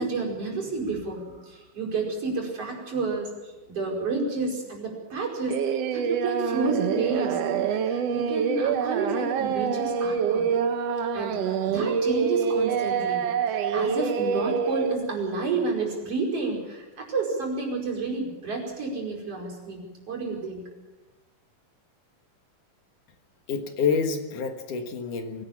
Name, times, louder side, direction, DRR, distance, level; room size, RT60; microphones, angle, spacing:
voice 1, 0.0-5.6 5.9-7.4 7.8-10.5 11.1-20.7, right 3 dB, 45° right, -1 dB, 6.0 m, -30 dB
Singing, 5.5-14.9, right 7 dB, 60° right, 1.8 m, -26 dB
voice 2, 23.5-25.5, left 5 dB, 70° left, 6 dB, 3.1 m, -27 dB
23.5 x 18.0 x 7.3 m, 1.2 s
omnidirectional pair, 3.8 m